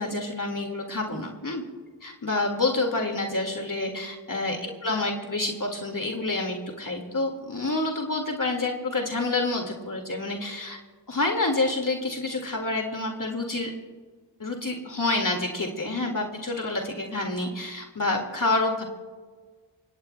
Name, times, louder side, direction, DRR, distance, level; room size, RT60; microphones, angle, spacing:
voice 1, 0.0-1.6 2.0-10.8 11.1-13.7 14.4-18.8, left 2 dB, 45° left, 2 dB, 2.0 m, -28 dB
25.0 x 19.5 x 2.2 m, 1.5 s
cardioid pair, 50°, 46 cm